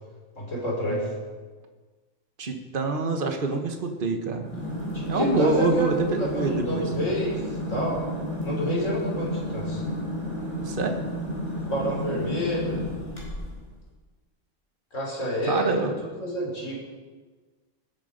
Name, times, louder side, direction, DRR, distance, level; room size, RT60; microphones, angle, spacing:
voice 1, 0.4-1.1 4.9-7.4 7.7-8.0 8.4-9.8 11.7-12.8 14.9-16.7, equal, 70° left, -3 dB, 4.3 m, -29 dB
voice 2, 2.4-4.5 5.1-6.8 10.6-11.0 15.5-16.0, right 3 dB, 40° right, 5 dB, 1.4 m, -26 dB
sound 1, 4.4-13.6, equal, 35° left, 4.6 m, -31 dB
19.0 x 8.4 x 5.2 m, 1.4 s
omnidirectional pair, 1.4 m